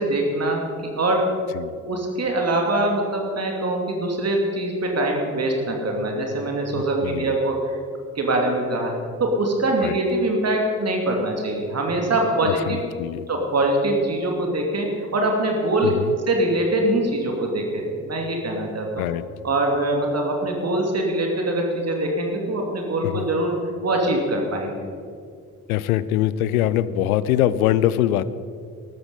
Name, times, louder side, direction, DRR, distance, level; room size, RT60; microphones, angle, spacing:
voice 1, 0.0-1.3 1.9-7.8 8.1-12.8 13.3-15.9 16.3-19.0 19.4-24.8, right 1 dB, 35° right, 1 dB, 2.7 m, -23 dB
voice 2, 6.7-7.4 9.8-10.0 12.4-13.2 15.8-16.2 19.0-19.2 23.0-23.3 25.7-28.2, left 12 dB, 75° left, 16 dB, 0.6 m, -23 dB
14.5 x 13.0 x 5.4 m, 2.2 s
figure-of-eight pair, 40°, 44 cm